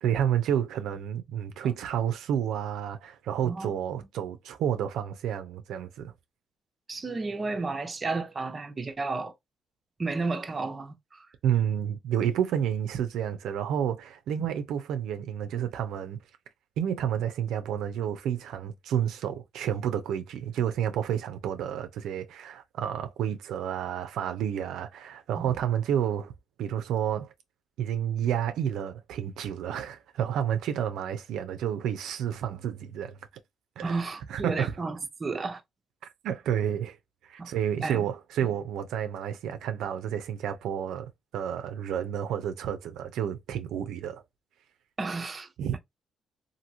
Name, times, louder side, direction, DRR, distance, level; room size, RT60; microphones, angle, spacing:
voice 1, 0.0-6.1 11.4-16.2 16.8-26.3 26.6-27.3 27.8-33.2 33.8-34.7 36.2-37.0 37.2-44.2 45.6-45.7, right 9 dB, 85° right, 0.5 m, -30 dB
voice 2, 6.9-9.3 10.0-11.3 14.4-14.5 25.4-25.5 33.8-35.6 37.4-37.5 37.8-38.0 45.0-45.8, right 3 dB, 30° right, 0.6 m, -32 dB
2.9 x 2.6 x 2.6 m
cardioid pair, 90°, 0 cm